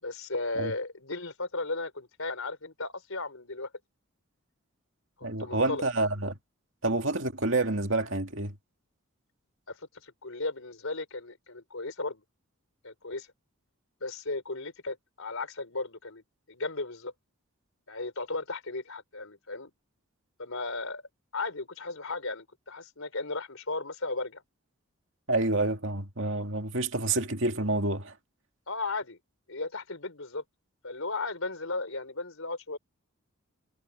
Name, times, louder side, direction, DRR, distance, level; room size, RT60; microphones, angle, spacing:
voice 1, 0.0-3.7 5.2-5.9 9.7-12.2 12.8-13.3 14.0-16.2 16.5-17.1 17.9-19.7 20.4-21.0 21.3-24.4 28.7-29.2 29.5-30.4 30.8-32.8, left 3 dB, 70° left, 4.0 m, -35 dB
voice 2, 5.2-6.4 6.8-8.5 25.3-28.1, right 2 dB, 60° right, 2.4 m, -28 dB
head